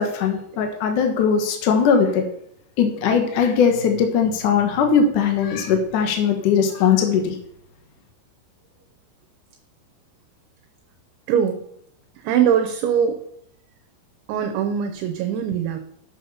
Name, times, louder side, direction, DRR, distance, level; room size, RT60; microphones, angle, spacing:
voice 1, 0.0-2.2 2.8-7.3, left 6 dB, 70° left, 4 dB, 1.9 m, -19 dB
voice 2, 11.3-11.6 12.2-13.2 14.3-15.8, right 8 dB, 75° right, 6 dB, 2.9 m, -21 dB
10.5 x 7.1 x 5.6 m, 0.71 s
omnidirectional pair, 5.7 m